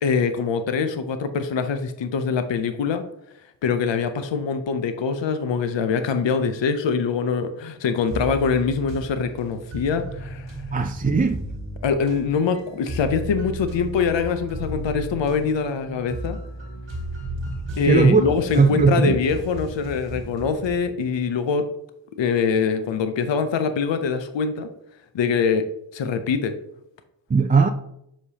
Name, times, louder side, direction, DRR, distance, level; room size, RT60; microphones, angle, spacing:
voice 1, 0.0-3.0 3.6-10.5 11.8-16.4 17.8-21.7 22.2-24.7 25.1-26.6, left 5 dB, 75° left, 0.6 m, -24 dB
sound 1, 8.1-20.9, right 1 dB, 85° right, 1.7 m, -34 dB
voice 2, 10.7-11.4 17.8-18.2 18.6-19.2 27.3-27.7, right 5 dB, 20° right, 0.4 m, -18 dB
7.2 x 5.0 x 2.8 m
cardioid pair, 40°, 44 cm